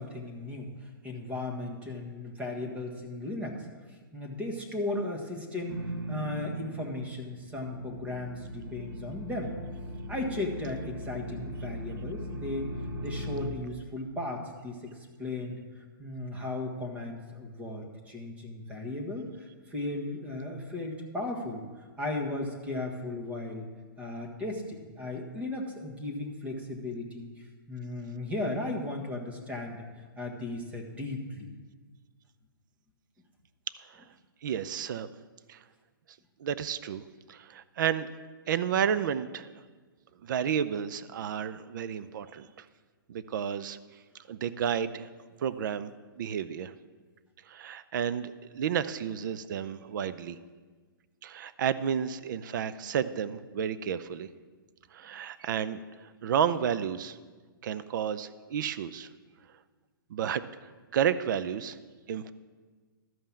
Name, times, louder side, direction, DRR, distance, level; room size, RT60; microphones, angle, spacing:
voice 1, 0.0-9.5 10.1-12.7 13.0-23.7 24.0-29.8 30.2-31.5, left 2 dB, 10° right, 2 dB, 1.4 m, -36 dB
sound 1, 5.7-7.1 7.4-13.5, equal, 90° right, 1.3 m, -39 dB
voice 2, 34.4-35.1 35.5-35.6 36.4-38.1 38.5-39.5 40.2-42.7 43.1-43.8 44.3-45.1 45.4-46.7 47.5-50.4 51.2-54.3 54.9-55.8 56.2-57.2 57.6-59.1 60.1-60.4 60.9-61.8 62.1-62.3, right 8 dB, 60° right, 14 dB, 0.5 m, -31 dB
12.5 x 5.6 x 7.3 m, 1.4 s
hypercardioid pair, 140°, 12 cm